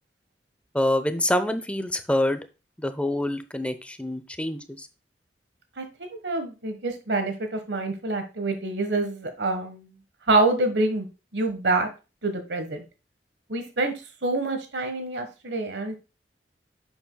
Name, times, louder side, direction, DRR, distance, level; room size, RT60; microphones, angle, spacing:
voice 1, 0.7-2.4 2.8-4.9, left 1 dB, 5° left, 11 dB, 0.7 m, -26 dB
voice 2, 6.1-9.9 10.3-11.1 11.3-11.9 12.2-12.8 13.5-13.9 14.2-16.0, right 2 dB, 75° right, 7 dB, 1.4 m, -26 dB
10.5 x 7.1 x 2.2 m, 0.29 s
head